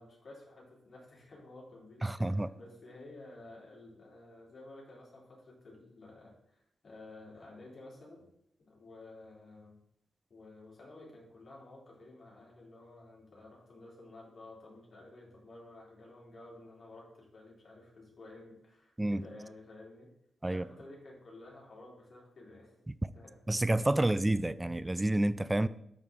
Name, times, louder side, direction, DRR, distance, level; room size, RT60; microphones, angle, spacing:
voice 1, 0.0-8.3 8.6-9.7 10.3-20.1 20.5-22.8 23.1-23.4, left 2 dB, 50° left, -4 dB, 3.1 m, -52 dB
voice 2, 2.0-2.5 19.0-19.2 20.4-20.6 23.5-25.7, right 1 dB, 15° right, 15 dB, 0.3 m, -29 dB
12.0 x 4.3 x 3.6 m, 0.74 s
cardioid pair, 90°, 0 cm